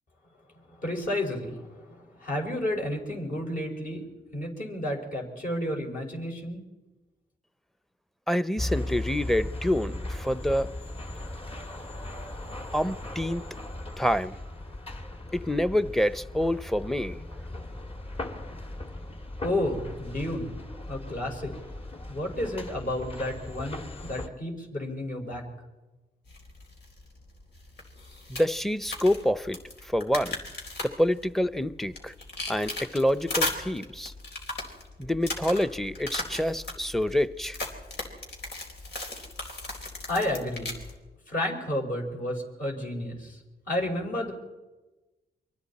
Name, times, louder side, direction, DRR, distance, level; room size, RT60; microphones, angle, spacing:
voice 1, 0.7-4.1 4.3-6.6 19.4-20.5 20.9-21.5 22.1-25.5 40.1-40.7 41.3-43.4 43.7-44.3, left 1 dB, 55° left, 5.3 m, -31 dB
voice 2, 8.3-10.7 12.7-13.4 14.0-14.4 15.3-17.2 28.3-30.4 30.8-32.1 32.5-34.1 35.0-37.6, equal, ahead, 0.7 m, -27 dB
sound 1, 8.6-24.3, left 1 dB, 35° left, 2.1 m, -38 dB
sound 2, 26.3-40.9, left 2 dB, 85° left, 4.0 m, -37 dB
29.0 x 23.5 x 4.3 m
cardioid pair, 85°, 17 cm